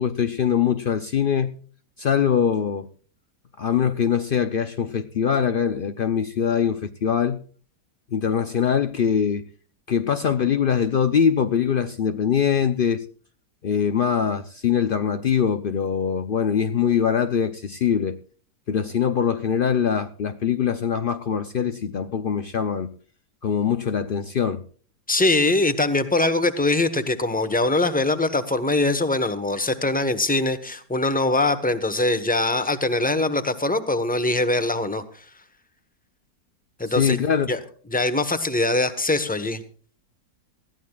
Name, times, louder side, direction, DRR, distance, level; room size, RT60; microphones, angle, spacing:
voice 1, 0.0-1.6 2.0-2.9 3.6-7.4 8.1-9.4 9.9-13.0 13.6-18.2 18.7-22.9 23.4-24.6 36.9-37.5, left 8 dB, 75° left, 0.5 m, -23 dB
voice 2, 25.1-35.0 36.8-37.2 37.5-37.6 37.9-39.6, left 2 dB, 5° left, 0.9 m, -22 dB
20.0 x 15.0 x 2.4 m
omnidirectional pair, 1.9 m